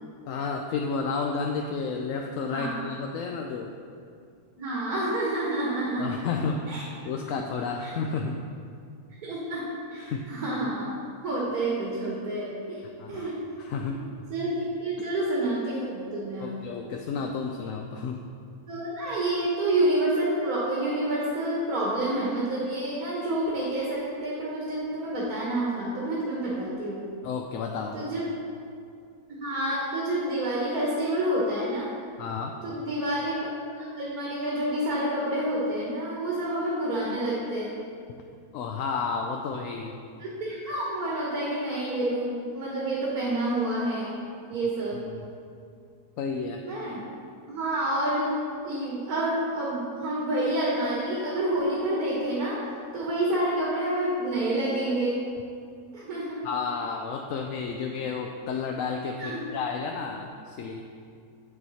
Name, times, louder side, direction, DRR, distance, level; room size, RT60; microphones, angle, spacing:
voice 1, 0.3-3.7 6.0-6.6 7.0-8.4 10.0-10.3 13.0-13.3 13.6-14.0 15.0-15.1 16.4-18.2 27.2-28.0 32.2-32.6 38.5-40.0 44.9-45.3 46.2-46.6 56.4-60.8, left 5 dB, 70° left, 2 dB, 0.9 m, -31 dB
voice 2, 4.6-6.1 6.7-7.1 7.8-7.9 9.2-10.9 11.2-12.8 13.1-13.4 13.9-14.0 14.3-16.5 18.7-27.1 27.9-28.3 29.3-31.9 32.6-37.7 40.2-44.2 44.5-45.0 46.7-47.0 47.5-52.6 52.9-55.2 55.9-56.4 59.2-59.4, right 1 dB, 70° right, -5 dB, 1.9 m, -28 dB
8.1 x 7.1 x 4.2 m, 2.3 s
omnidirectional pair, 1.6 m